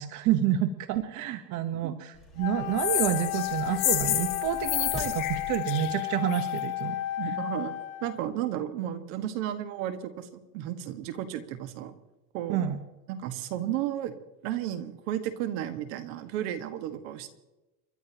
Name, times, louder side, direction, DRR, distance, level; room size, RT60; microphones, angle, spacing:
voice 1, 0.0-7.0 12.5-12.8, right 10 dB, 40° right, 9 dB, 1.0 m, -29 dB
sound 1, 2.1-5.5, left 2 dB, ahead, 4.6 m, -44 dB
Wind instrument woodwind instrument, 2.4-8.3, left 16 dB, 80° left, 1.8 m, -33 dB
sound 2, 2.8-6.6, left 16 dB, 45° left, 1.2 m, -30 dB
voice 2, 7.2-7.8 8.0-11.9 12.3-12.6 13.1-14.1 14.4-17.3, right 11 dB, 60° right, 9 dB, 1.7 m, -33 dB
30.0 x 12.0 x 2.9 m, 1.0 s
supercardioid pair, 140°, 43 cm